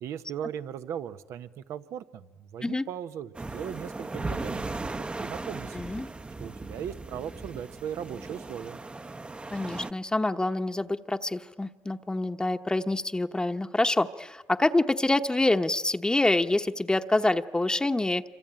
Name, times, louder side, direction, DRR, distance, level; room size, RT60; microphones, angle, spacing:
voice 1, 0.0-4.9 5.2-5.9 6.4-8.8, right 9 dB, 80° right, 11 dB, 1.0 m, -38 dB
sound 1, 3.3-9.9, right 3 dB, 20° right, 0.9 m, -37 dB
voice 2, 5.7-6.1 9.5-18.2, left 2 dB, 15° left, 8 dB, 1.0 m, -26 dB
26.5 x 25.0 x 8.9 m, 1.2 s
supercardioid pair, 70°, 5 cm